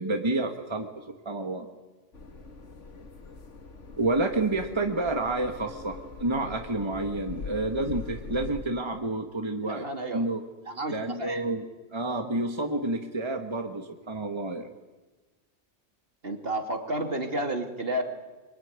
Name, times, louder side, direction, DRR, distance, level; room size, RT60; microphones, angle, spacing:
voice 1, 0.0-1.7 4.0-9.9 10.1-10.4 10.9-11.6 11.9-14.7, right 2 dB, 25° right, 5 dB, 1.7 m, -29 dB
sound 1, 2.1-8.6, left 4 dB, 85° left, 2.2 m, -42 dB
voice 2, 9.6-10.2 10.7-11.4 16.2-18.0, right 1 dB, 55° right, 4 dB, 3.0 m, -31 dB
25.0 x 24.0 x 9.7 m, 1.2 s
omnidirectional pair, 1.2 m